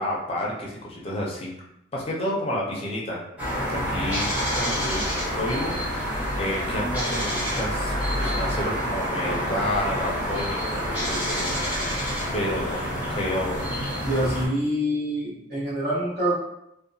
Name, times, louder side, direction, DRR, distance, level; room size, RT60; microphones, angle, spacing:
voice 1, 0.0-1.5 1.9-3.2 3.5-5.0 5.3-11.5 12.3-13.7, left 1 dB, 30° left, -3 dB, 0.4 m, -30 dB
sound 1, 3.4-14.5, equal, 10° right, 0.8 m, -27 dB
voice 2, 14.0-16.4, equal, 55° right, -8 dB, 1.2 m, -25 dB
2.7 x 2.1 x 2.6 m, 0.81 s
head